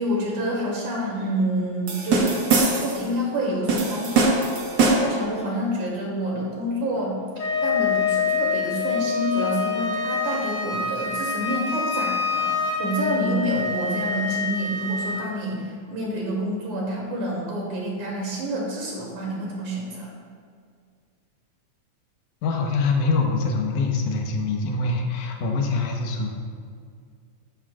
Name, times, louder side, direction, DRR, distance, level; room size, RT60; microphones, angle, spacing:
voice 1, 0.0-2.3 2.7-7.2 7.6-20.1, equal, 75° right, -4 dB, 4.0 m, -28 dB
sound 1, 1.9-3.0 3.7-5.2, right 3 dB, 50° right, 1.6 m, -22 dB
Wind instrument woodwind instrument, 7.4-15.2, left 4 dB, 40° left, 2.0 m, -26 dB
voice 2, 22.4-26.3, left 3 dB, 80° left, 1 dB, 2.6 m, -24 dB
13.5 x 12.5 x 2.5 m, 2.1 s
omnidirectional pair, 3.5 m